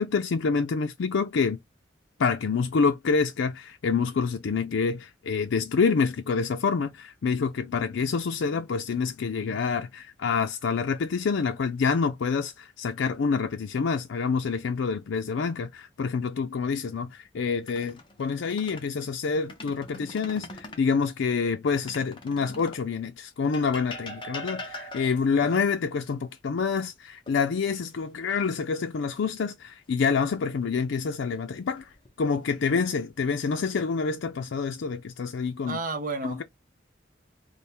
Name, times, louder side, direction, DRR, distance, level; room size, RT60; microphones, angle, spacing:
voice 1, 0.0-1.6 2.2-31.9 32.2-35.8 36.2-36.4, left 5 dB, 80° left, 0.4 m, -27 dB
sound 1, 17.5-18.9 19.3-20.9 21.8-22.9 23.5-25.3 27.3-27.9 28.3-28.6 31.5-32.1 32.8-33.4, left 1 dB, 25° left, 0.6 m, -42 dB
voice 2, 35.7-36.4, right 3 dB, 45° right, 0.6 m, -32 dB
3.4 x 2.1 x 4.3 m
head